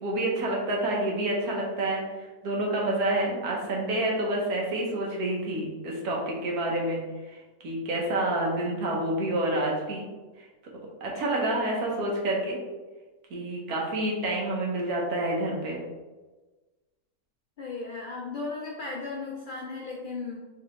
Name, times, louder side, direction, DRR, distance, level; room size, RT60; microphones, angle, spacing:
voice 1, 0.0-7.0 7.3-7.4 7.6-10.1 10.4-10.5 11.0-12.6 13.3-15.8, right 1 dB, 70° right, -2 dB, 1.4 m, -28 dB
voice 2, 17.6-20.4, left 3 dB, 85° left, -3 dB, 0.4 m, -36 dB
4.0 x 3.4 x 3.1 m, 1.2 s
omnidirectional pair, 1.7 m